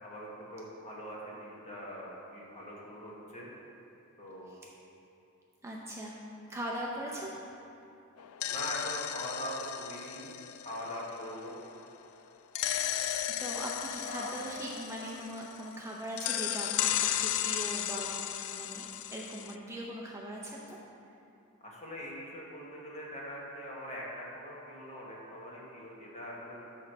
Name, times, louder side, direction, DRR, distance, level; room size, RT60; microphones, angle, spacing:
voice 1, 0.0-3.5 4.2-4.5 7.0-7.2 8.5-10.3 10.6-11.6 14.0-14.3 21.6-26.6, equal, 30° left, -4 dB, 1.3 m, -42 dB
voice 2, 5.6-6.2 6.5-7.3 13.4-18.8 19.1-20.8, right 1 dB, 15° right, -3 dB, 0.5 m, -40 dB
sound 1, 8.2-11.8 12.5-15.8 16.2-19.5, left 11 dB, 70° left, 0.3 m, -35 dB
6.1 x 4.5 x 6.5 m, 2.8 s
head